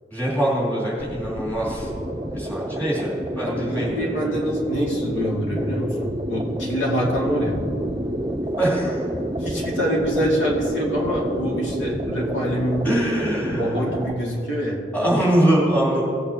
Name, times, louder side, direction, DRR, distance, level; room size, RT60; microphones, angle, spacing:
voice 1, 0.1-1.9 2.3-4.3 8.6-9.0 12.8-13.8 14.9-16.0, right 1 dB, 10° left, -6 dB, 2.6 m, -23 dB
sound 1, 1.0-14.1, right 1 dB, 15° right, 0.5 m, -29 dB
voice 2, 3.4-7.6 9.4-13.0 13.4-14.8, equal, 80° left, -4 dB, 2.3 m, -25 dB
18.0 x 8.7 x 2.8 m, 2.6 s
head